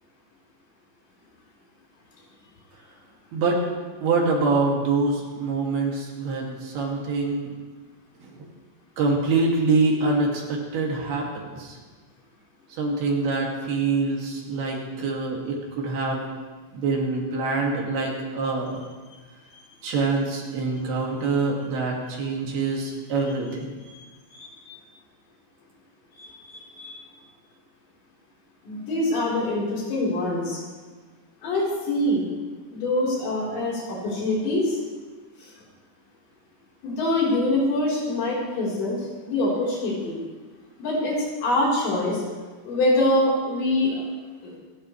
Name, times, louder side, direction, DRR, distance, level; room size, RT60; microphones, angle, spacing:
voice 1, 4.0-7.5 8.2-8.3 9.0-11.7 12.8-16.2 16.7-18.8 19.8-23.7, right 3 dB, 65° right, -2 dB, 4.1 m, -25 dB
voice 2, 24.3-24.8 26.2-27.0 28.6-30.6 31.4-32.2 32.7-34.8 35.4-35.5 36.8-40.2 40.8-41.2 41.4-42.2 42.6-44.0 44.4-44.5, left 1 dB, 80° left, -5 dB, 6.2 m, -25 dB
27.0 x 11.5 x 3.2 m, 1.4 s
omnidirectional pair, 5.0 m